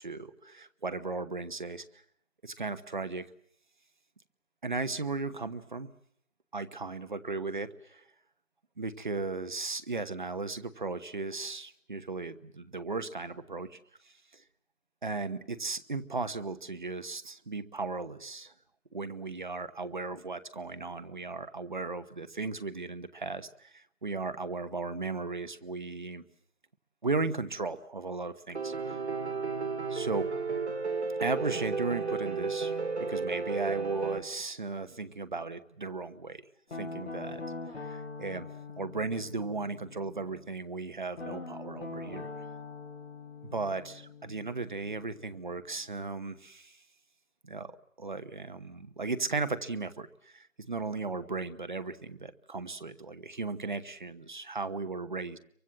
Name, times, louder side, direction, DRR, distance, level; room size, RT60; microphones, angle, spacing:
voice 1, 0.0-1.8 2.4-3.3 4.6-5.9 6.5-8.0 8.8-13.8 14.0-14.4 15.0-18.5 18.9-26.2 27.0-29.0 29.9-30.3 31.2-32.7 33.0-36.4 36.7-37.4 37.8-38.5 38.8-42.3 43.4-46.8 47.4-47.7 48.0-55.4, right 3 dB, 35° right, 12 dB, 1.0 m, -36 dB
Piano, 28.5-34.2, right 4 dB, 55° right, 2.1 m, -33 dB
Guitar, 36.7-40.5 41.1-45.9, left 3 dB, 55° left, 6.4 m, -43 dB
27.0 x 24.0 x 7.4 m, 0.65 s
figure-of-eight pair, 175°, 40 cm